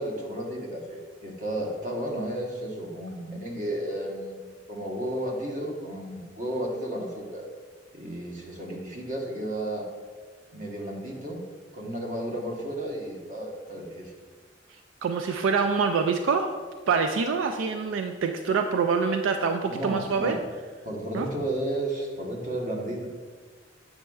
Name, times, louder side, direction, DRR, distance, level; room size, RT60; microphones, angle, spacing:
voice 1, 0.0-7.4 7.9-9.9 10.5-11.5 11.7-14.1 19.7-20.4 20.8-23.1, right 1 dB, 40° right, 0 dB, 1.0 m, -33 dB
voice 2, 15.0-16.5 16.9-20.4 21.1-21.3, right 5 dB, 85° right, 6 dB, 0.3 m, -25 dB
7.5 x 6.1 x 2.3 m, 1.5 s
head